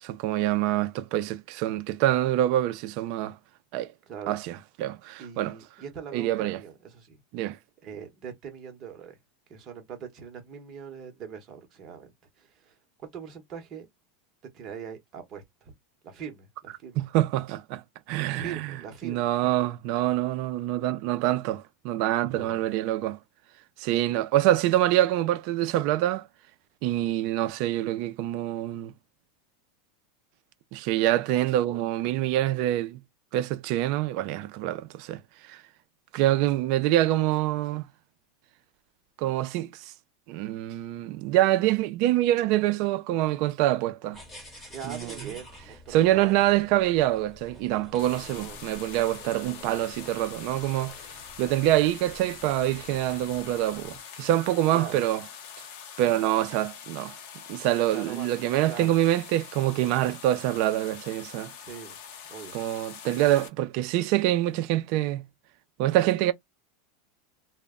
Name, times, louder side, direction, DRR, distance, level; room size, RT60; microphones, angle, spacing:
voice 1, 0.0-3.4 3.7-3.9 4.3-5.5 6.1-6.6 7.3-7.6 17.0-17.8 18.1-18.6 19.0-23.2 23.8-26.3 26.8-28.9 30.7-33.0 33.3-35.2 35.5-35.6 36.1-37.9 39.2-39.8 40.3-44.2 44.8-45.1 45.9-51.0 51.4-55.2 56.0-57.1 57.5-61.5 62.5-65.2 65.8-66.3, right 14 dB, 50° right, 0.3 m, -25 dB
voice 2, 4.1-4.4 5.2-7.2 7.8-9.2 9.5-13.9 14.5-15.7 16.0-17.0 18.3-19.3 22.3-22.6 44.7-46.3 46.6-46.7 48.2-48.6 54.7-54.9 57.9-58.3 58.7-59.0 61.6-62.0 62.3-62.6, right 7 dB, 30° right, 0.9 m, -41 dB
sound 1, 44.1-54.0, left 1 dB, 15° left, 1.2 m, -49 dB
sound 2, 48.0-63.5, left 8 dB, 55° left, 0.6 m, -44 dB
2.1 x 2.0 x 3.5 m
supercardioid pair, 160°, 0 cm